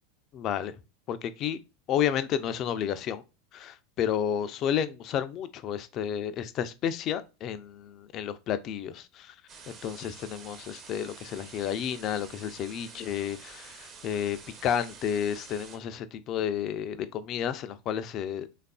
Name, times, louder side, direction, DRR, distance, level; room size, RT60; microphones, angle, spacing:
voice 1, 0.3-0.7 1.1-1.6 1.9-3.2 3.5-9.3 9.7-18.5, left 9 dB, 40° left, 0.4 m, -31 dB
sound 1, 9.5-15.8, right 5 dB, 40° right, 0.7 m, -48 dB
3.4 x 2.4 x 2.3 m
figure-of-eight pair, 80°, 0 cm